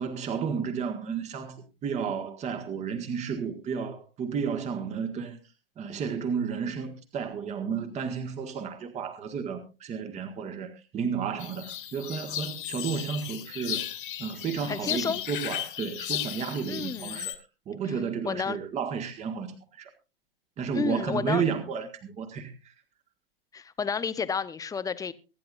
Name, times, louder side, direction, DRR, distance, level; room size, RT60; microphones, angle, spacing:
voice 1, 0.0-5.4 5.8-13.8 14.2-17.4 17.7-19.9 20.6-22.7, right 6 dB, 25° right, 1.7 m, -32 dB
sound 1, 11.4-17.3, left 11 dB, 60° left, 2.4 m, -35 dB
voice 2, 14.7-15.2 16.7-17.3 17.9-18.6 20.7-21.4 23.5-25.1, left 6 dB, 10° left, 0.8 m, -31 dB
24.0 x 10.5 x 2.5 m
figure-of-eight pair, 105°, 29 cm